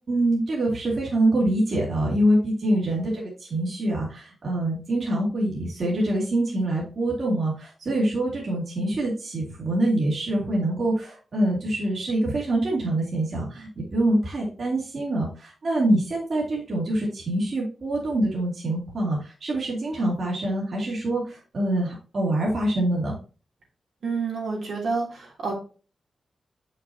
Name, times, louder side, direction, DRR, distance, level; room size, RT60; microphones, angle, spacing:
voice 1, 0.1-23.1, right 1 dB, 50° right, -4 dB, 2.8 m, -25 dB
voice 2, 24.0-25.5, right 4 dB, 70° right, -2 dB, 3.2 m, -28 dB
7.3 x 6.6 x 2.8 m, 0.36 s
wide cardioid pair, 140°, 0 cm